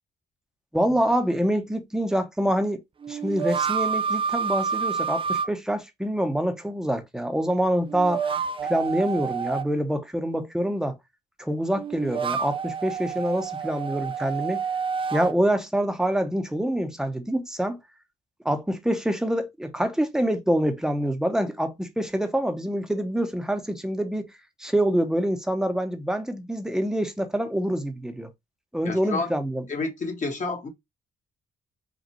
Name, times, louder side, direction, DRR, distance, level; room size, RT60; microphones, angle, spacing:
voice 1, 0.7-2.8 3.1-8.3 8.6-11.0 11.4-14.6 15.1-17.8 18.4-24.3 24.6-28.3 28.7-29.6, right 1 dB, 5° right, 1.0 m, -26 dB
sound 1, 0.9-1.0 3.0-5.5 7.9-9.7 11.7-15.4, right 6 dB, 25° right, 0.5 m, -28 dB
voice 2, 28.8-29.3 29.7-30.7, left 3 dB, 40° left, 1.5 m, -29 dB
5.0 x 2.6 x 3.1 m
cardioid pair, 90°, 20 cm